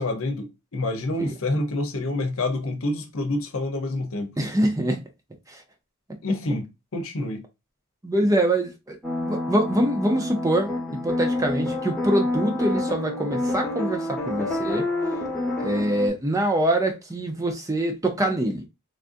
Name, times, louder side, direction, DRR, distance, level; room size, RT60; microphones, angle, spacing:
voice 1, 0.0-4.4 6.2-6.7 6.9-7.4, left 2 dB, 65° left, 0.8 m, -27 dB
voice 2, 4.4-5.0 5.5-5.6 8.0-9.0 9.2-14.9 15.6-18.7, right 1 dB, 15° right, 0.5 m, -24 dB
sound 1, 9.0-16.1, left 2 dB, 5° left, 1.0 m, -28 dB
3.4 x 2.5 x 2.5 m
head